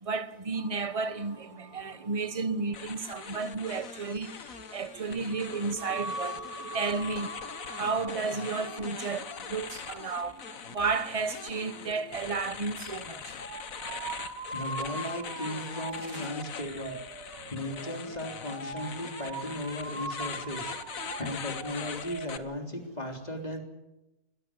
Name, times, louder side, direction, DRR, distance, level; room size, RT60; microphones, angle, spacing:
voice 1, 0.0-6.5 6.7-7.3 7.7-10.4 10.7-13.4 16.1-16.2, right 4 dB, 25° right, 0.8 m, -32 dB
sound 1, 0.5-12.2, right 1 dB, 55° right, 3.3 m, -45 dB
sound 2, 2.7-22.4, left 7 dB, 55° left, 1.5 m, -42 dB
sound 3, 13.4-22.3, right 3 dB, 80° right, 2.7 m, -41 dB
voice 2, 14.5-17.0 17.3-23.6, left 1 dB, 20° left, 3.7 m, -37 dB
21.5 x 16.5 x 9.8 m
omnidirectional pair, 1.9 m